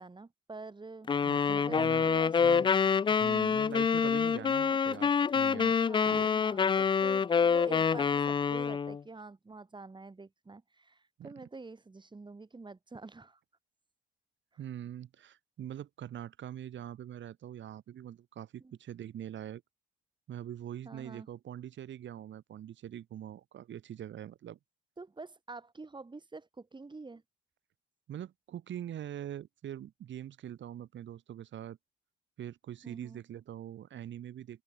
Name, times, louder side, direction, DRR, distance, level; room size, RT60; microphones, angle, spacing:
voice 1, 0.0-1.1 1.5-2.7 5.9-13.4 18.6-18.8 20.8-21.3 25.0-27.2 32.8-33.2, right 3 dB, 25° right, 5.1 m, -46 dB
sound 1, 1.1-9.0, left 6 dB, 25° left, 0.3 m, -27 dB
voice 2, 1.2-2.1 2.4-2.7 3.1-5.8 6.0-6.3 11.2-11.3 14.6-19.6 20.3-24.6 28.1-31.8 32.4-34.6, right 11 dB, 70° right, 3.9 m, -43 dB
open air
cardioid pair, 90°, 20 cm